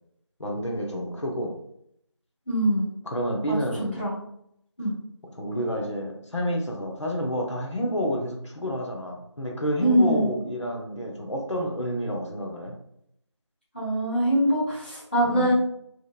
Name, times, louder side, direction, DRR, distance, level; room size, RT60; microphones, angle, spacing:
voice 1, 0.4-1.6 3.0-4.0 5.3-12.7 15.2-15.5, equal, 75° left, 0 dB, 0.8 m, -29 dB
voice 2, 2.5-2.9 3.5-3.6 4.0-4.2 4.8-4.9 9.8-10.3 13.7-15.5, right 1 dB, 20° left, -11 dB, 0.9 m, -23 dB
2.9 x 2.4 x 2.4 m, 0.73 s
figure-of-eight pair, 175°, 15 cm